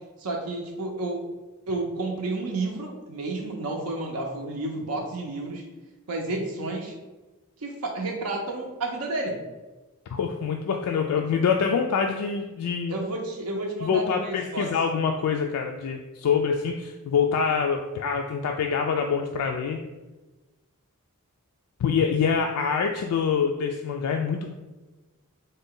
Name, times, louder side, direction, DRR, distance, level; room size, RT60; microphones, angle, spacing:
voice 1, 0.2-1.2 1.7-5.6 6.1-6.9 7.6-9.4 12.9-14.7, right 2 dB, 85° right, 0 dB, 0.6 m, -31 dB
voice 2, 10.1-13.0 13.8-19.8 21.8-24.5, left 6 dB, 75° left, 4 dB, 0.3 m, -25 dB
3.8 x 2.2 x 3.7 m, 1.2 s
head